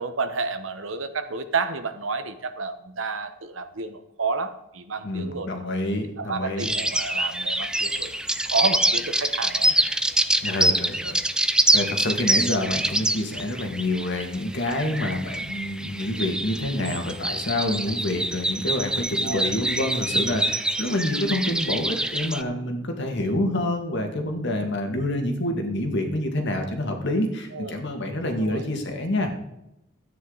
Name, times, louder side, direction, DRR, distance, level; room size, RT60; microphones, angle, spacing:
voice 1, 0.0-5.5 6.1-8.1 8.4-9.8 16.8-17.0 19.2-19.5 27.5-27.8 28.4-28.6, right 4 dB, 80° right, 9 dB, 1.1 m, -30 dB
voice 2, 5.0-6.7 10.4-11.4 11.7-29.3, left 1 dB, 60° left, 4 dB, 2.0 m, -27 dB
sound 1, 6.6-22.4, right 1 dB, 5° right, 0.4 m, -25 dB
13.5 x 9.2 x 4.0 m, 0.87 s
head